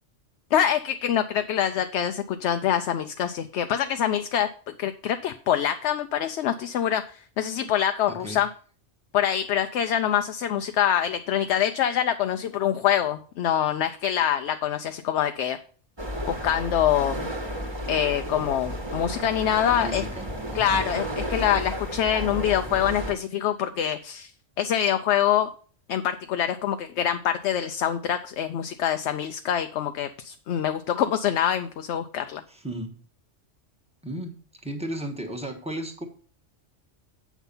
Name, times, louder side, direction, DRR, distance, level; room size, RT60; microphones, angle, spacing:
voice 1, 0.5-4.5 4.8-8.5 9.1-15.6 16.3-17.3 17.9-20.0 20.5-24.3 24.6-25.5 25.9-32.4, left 10 dB, 70° left, 9 dB, 0.9 m, -25 dB
voice 2, 8.1-8.4 19.8-20.9 32.5-33.0 34.0-36.1, right 1 dB, 5° right, 2 dB, 1.3 m, -35 dB
sound 1, 16.0-23.1, equal, 20° right, 1.4 m, -32 dB
8.2 x 6.0 x 5.5 m, 0.43 s
omnidirectional pair, 1.2 m